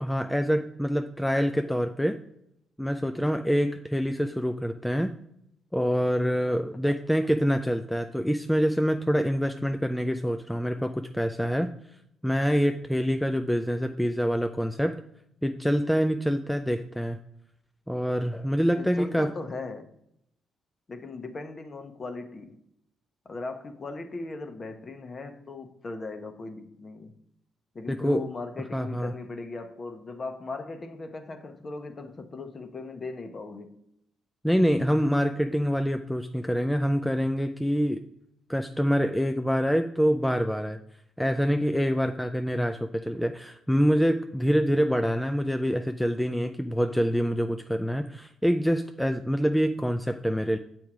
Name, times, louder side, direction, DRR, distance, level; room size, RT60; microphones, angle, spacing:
voice 1, 0.0-2.2 2.8-5.1 5.7-11.7 12.2-15.0 15.4-17.2 17.9-19.3 27.9-28.2 28.7-29.1 34.4-38.0 38.5-40.8 41.2-50.6, equal, 5° left, 0.4 m, -26 dB
voice 2, 18.8-19.9 20.9-22.6 23.2-27.1 27.7-33.8, left 3 dB, 35° left, 1.0 m, -38 dB
7.1 x 4.6 x 4.8 m
cardioid pair, 90°, 0 cm